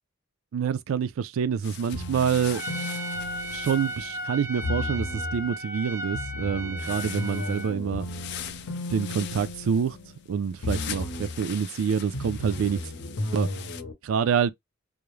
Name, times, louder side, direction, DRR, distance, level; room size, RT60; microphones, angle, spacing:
voice 1, 0.5-2.6 3.5-8.1 8.9-10.0 10.3-12.8 13.3-13.5 14.0-14.5, right 7 dB, 75° right, 0.3 m, -27 dB
sound 1, 1.6-4.3 6.8-13.8, left 10 dB, 55° left, 0.4 m, -42 dB
sound 2, 1.9-4.2 4.6-5.5 6.1-10.3 10.6-11.5 12.1-13.9, left 2 dB, 80° left, 0.7 m, -35 dB
Trumpet, 2.5-7.8, right 1 dB, 10° right, 0.6 m, -35 dB
2.4 x 2.0 x 3.0 m
head